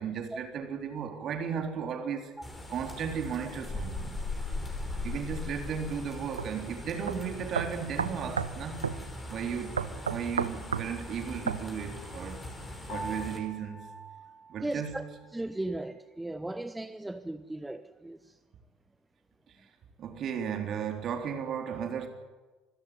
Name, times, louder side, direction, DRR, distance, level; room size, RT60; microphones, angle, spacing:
voice 1, 0.0-2.3 2.7-4.2 5.0-8.8 9.3-9.8 10.1-12.5 12.9-13.9 14.5-15.0 20.0-22.1, right 7 dB, 40° right, 3.6 m, -35 dB
sound 1, 2.4-13.4, left 2 dB, 20° left, 5.7 m, -40 dB
sound 2, 6.4-6.5 7.1-7.2 7.5-8.6 8.8-9.0 9.8-10.9 11.5-11.6, right 6 dB, 80° right, 0.7 m, -31 dB
Piano, 12.9-15.4, equal, 50° left, 7.3 m, -44 dB
voice 2, 14.6-15.0 15.3-18.3, right 1 dB, 10° right, 0.8 m, -36 dB
25.5 x 13.5 x 9.6 m
figure-of-eight pair, 65°, 0 cm